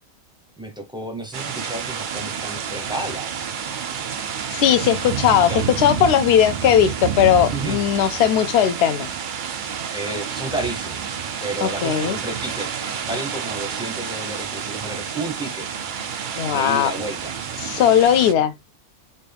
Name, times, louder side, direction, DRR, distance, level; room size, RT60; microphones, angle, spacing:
voice 1, 0.6-3.3 5.5-5.6 7.5-7.8 9.9-11.1 11.4-12.8 13.1-15.7 16.5-17.4 18.4-18.5, right 2 dB, 5° right, 0.4 m, -31 dB
sound 1, 1.3-18.3, right 7 dB, 85° right, 0.4 m, -29 dB
voice 2, 4.5-5.5 5.8-9.1 11.6-12.2 16.4-16.9 17.6-18.5, left 9 dB, 70° left, 0.6 m, -18 dB
4.3 x 2.2 x 3.4 m
omnidirectional pair, 1.5 m